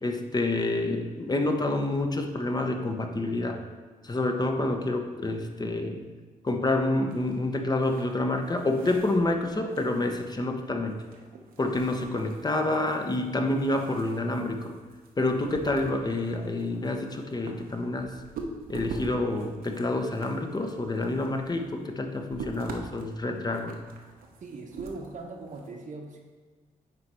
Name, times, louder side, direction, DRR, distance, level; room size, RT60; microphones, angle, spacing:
voice 1, 0.0-3.6 4.0-6.0 6.4-11.0 11.6-14.7 15.2-18.1 18.7-23.8, left 2 dB, 25° left, 4 dB, 0.8 m, -28 dB
sound 1, 7.1-25.7, right 3 dB, 85° right, 0.8 m, -45 dB
voice 2, 24.4-26.2, right 3 dB, 60° right, 1 dB, 0.9 m, -40 dB
9.4 x 3.3 x 4.3 m, 1.4 s
cardioid pair, 75°, 15 cm